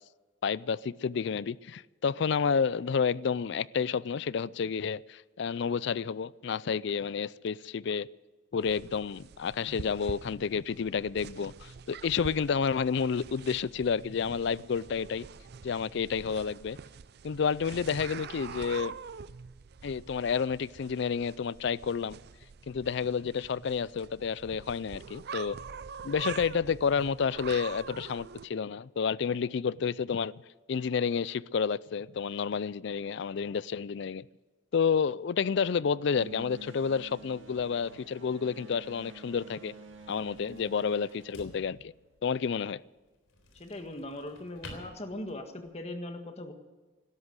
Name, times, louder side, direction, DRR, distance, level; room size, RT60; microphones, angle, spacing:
voice 1, 0.4-8.1 8.5-15.3 15.6-16.8 17.2-18.9 19.8-22.2 22.7-25.6 26.0-30.3 30.7-34.2 34.7-39.7 40.1-41.9 42.2-42.8, left 6 dB, 60° left, 21 dB, 0.4 m, -30 dB
sound 1, 8.6-28.5, right 6 dB, 55° right, 0.4 m, -45 dB
sound 2, 36.2-42.2, right 2 dB, 70° right, 2.3 m, -50 dB
sound 3, 37.0-45.7, left 1 dB, 85° left, 3.7 m, -54 dB
voice 2, 43.5-46.5, left 1 dB, 30° left, 6 dB, 1.7 m, -40 dB
17.0 x 13.0 x 6.5 m, 1.3 s
head